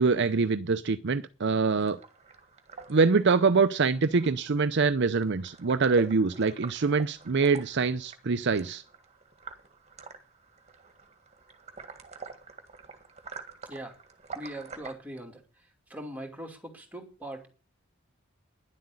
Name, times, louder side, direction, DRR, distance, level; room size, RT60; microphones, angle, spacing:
voice 1, 0.0-2.0 2.9-8.8, right 4 dB, 60° right, 0.6 m, -24 dB
sound 1, 1.6-14.9, right 4 dB, 35° right, 1.8 m, -47 dB
voice 2, 13.6-14.0 14.3-15.4 15.9-17.5, right 1 dB, 10° right, 2.7 m, -40 dB
11.0 x 7.8 x 9.8 m
head